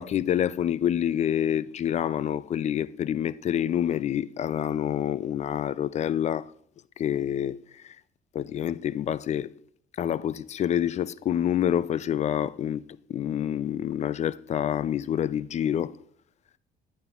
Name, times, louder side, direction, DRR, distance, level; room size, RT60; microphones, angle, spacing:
voice 1, 0.0-6.5 7.0-7.6 7.8-8.0 8.3-9.5 10.0-12.8 13.1-15.9, left 10 dB, 40° left, 0.4 m, -27 dB
12.0 x 9.3 x 2.4 m
cardioid pair, 110°, 17 cm